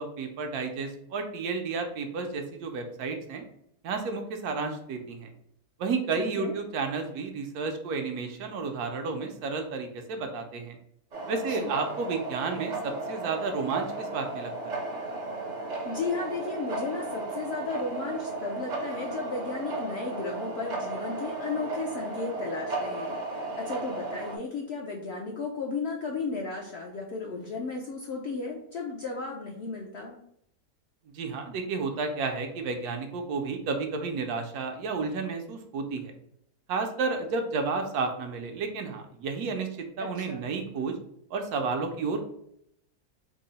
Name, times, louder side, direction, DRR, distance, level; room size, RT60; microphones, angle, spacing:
voice 1, 0.0-3.4 3.8-5.3 5.8-10.8 11.3-14.8 31.1-36.1 36.7-39.7 40.0-40.9 41.3-42.3, right 4 dB, 80° right, 4 dB, 1.1 m, -31 dB
voice 2, 6.2-6.5 11.5-11.7 15.8-30.2 40.0-40.5, left 3 dB, 65° left, -1 dB, 0.6 m, -34 dB
sound 1, 11.1-24.4, right 2 dB, 45° right, 0.5 m, -35 dB
3.7 x 2.0 x 3.9 m, 0.71 s
omnidirectional pair, 1.6 m